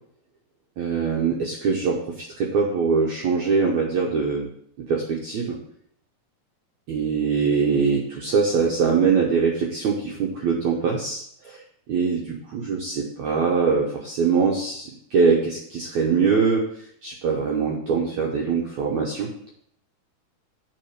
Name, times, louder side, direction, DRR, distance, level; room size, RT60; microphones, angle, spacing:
voice 1, 0.8-4.5 4.9-5.6 6.9-11.6 11.9-16.6 17.0-19.3, right 5 dB, 75° right, -2 dB, 1.7 m, -23 dB
7.4 x 4.1 x 6.4 m, 0.67 s
omnidirectional pair, 4.6 m